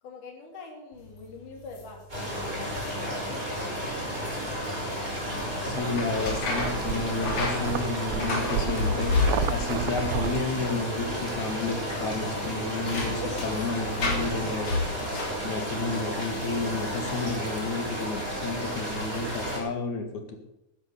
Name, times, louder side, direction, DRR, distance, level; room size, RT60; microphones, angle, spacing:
voice 1, 0.0-2.1 2.5-3.9, left 3 dB, 90° left, 3 dB, 4.1 m, -45 dB
sound 1, 0.9-17.9 18.5-18.9, left 3 dB, 45° left, 3.6 m, -33 dB
sound 2, 2.1-19.6, equal, 15° right, 5.5 m, -32 dB
sound 3, 5.4-10.4, right 9 dB, 75° right, 1.9 m, -33 dB
voice 2, 5.6-9.1 9.5-14.8 15.4-20.4, left 3 dB, 70° left, 5 dB, 3.3 m, -31 dB
11.0 x 10.5 x 7.1 m, 0.88 s
omnidirectional pair, 3.5 m